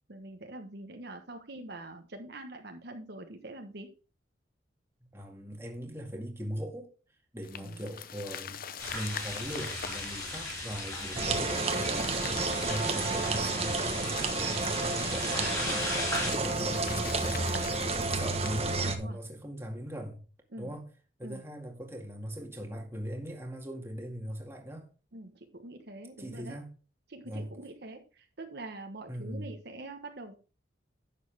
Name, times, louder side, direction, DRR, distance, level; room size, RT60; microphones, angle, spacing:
voice 1, 0.1-3.9 7.5-7.9 11.8-12.2 18.8-19.2 20.5-20.7 21.2-21.4 25.1-26.6 27.1-30.3, right 2 dB, 60° right, 1.2 m, -45 dB
voice 2, 5.1-6.9 7.3-8.6 8.9-15.9 16.2-17.5 17.9-20.2 20.6-20.9 21.2-24.9 26.2-26.7 27.2-27.5 29.1-29.5, equal, 15° right, 2.0 m, -40 dB
sound 1, 7.4-18.9, left 7 dB, 50° left, 0.8 m, -44 dB
sound 2, 8.8-16.3, left 1 dB, 15° left, 4.9 m, -37 dB
sound 3, 11.1-19.0, right 3 dB, 35° right, 1.3 m, -31 dB
11.0 x 7.4 x 3.5 m
head